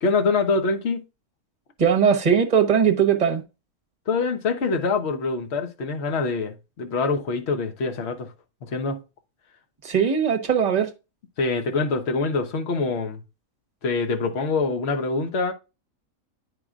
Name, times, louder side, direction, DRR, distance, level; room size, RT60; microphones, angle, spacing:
voice 1, 0.0-1.0 4.1-8.3 8.6-9.0 11.4-13.2 13.8-15.5, left 4 dB, 50° left, 1.2 m, -25 dB
voice 2, 1.8-3.4 9.8-10.9, right 7 dB, 30° right, 1.1 m, -20 dB
9.5 x 5.0 x 2.4 m
omnidirectional pair, 1.5 m